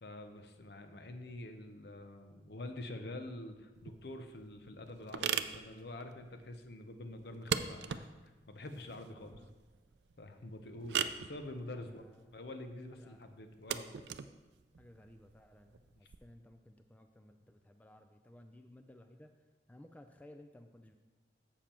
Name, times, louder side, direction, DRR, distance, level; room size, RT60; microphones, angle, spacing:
voice 1, 0.0-9.4 10.2-12.0 12.3-13.9, left 1 dB, 60° left, 7 dB, 0.7 m, -46 dB
sound 1, 3.7-16.2, right 8 dB, 70° right, 0.4 m, -41 dB
voice 2, 9.1-9.5 9.7-9.8 11.8-12.2 13.0-13.2 14.8-19.3 19.7-20.9, left 1 dB, 10° left, 5 dB, 0.3 m, -58 dB
7.2 x 7.2 x 4.4 m, 1.2 s
head